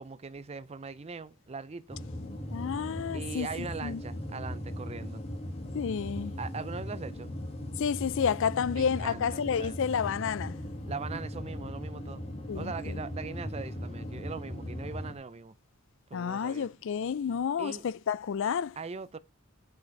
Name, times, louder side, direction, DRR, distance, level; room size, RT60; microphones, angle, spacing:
voice 1, 0.0-2.0 3.1-5.2 6.4-7.3 8.7-9.9 10.9-12.2 12.5-15.6 16.1-16.7 17.6-17.8 18.8-19.2, right 4 dB, 30° right, 0.5 m, -40 dB
sound 1, 1.9-15.1, left 1 dB, 30° left, 1.7 m, -38 dB
voice 2, 2.5-3.5 3.8-4.0 5.7-6.3 7.8-10.6 12.5-13.0 16.1-18.8, left 7 dB, 60° left, 0.4 m, -30 dB
7.7 x 5.7 x 5.2 m
head